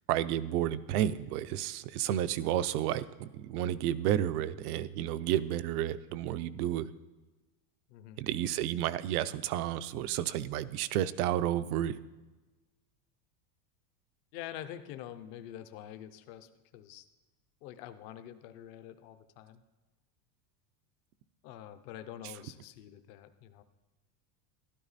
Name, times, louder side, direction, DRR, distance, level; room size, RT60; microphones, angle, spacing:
voice 1, 0.1-6.9 8.2-12.0, right 11 dB, 65° right, 14 dB, 0.7 m, -31 dB
voice 2, 7.9-8.2 14.3-17.0 17.6-19.6 21.4-23.6, left 11 dB, 35° left, 10 dB, 0.6 m, -46 dB
12.5 x 12.0 x 4.1 m, 1.2 s
supercardioid pair, 175°, 48 cm